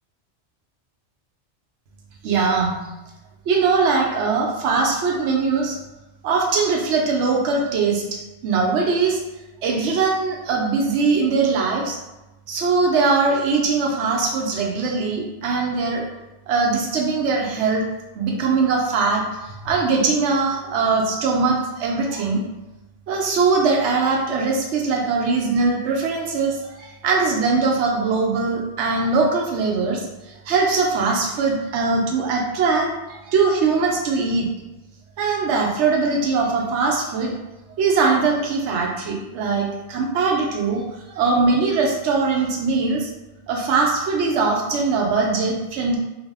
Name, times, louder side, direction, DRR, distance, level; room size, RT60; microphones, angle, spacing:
voice 1, 2.2-2.7 3.5-5.8 6.2-9.2 9.6-12.0 12.5-16.0 16.5-17.9 18.2-22.4 23.1-34.5 35.2-37.3 37.8-43.1 43.5-46.0, right 4 dB, 85° right, 0 dB, 0.9 m, -21 dB
2.7 x 2.0 x 3.3 m, 1.0 s
omnidirectional pair, 1.1 m